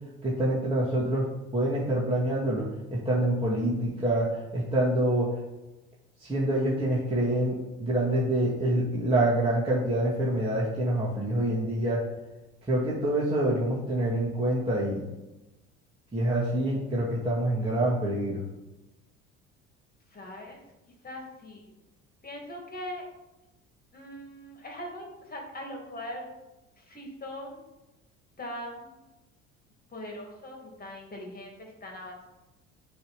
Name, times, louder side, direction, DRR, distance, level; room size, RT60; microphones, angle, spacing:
voice 1, 0.2-1.3 1.5-2.6 2.9-5.3 6.2-12.1 12.7-15.0 16.1-18.4, right 1 dB, 15° right, -7 dB, 2.1 m, -26 dB
voice 2, 20.1-20.6 21.0-21.7 22.2-23.1 23.9-26.3 26.8-27.6 28.4-29.0 29.9-32.3, left 1 dB, 25° left, 1 dB, 2.5 m, -41 dB
7.7 x 3.5 x 5.9 m, 1.0 s
hypercardioid pair, 65°, 36 cm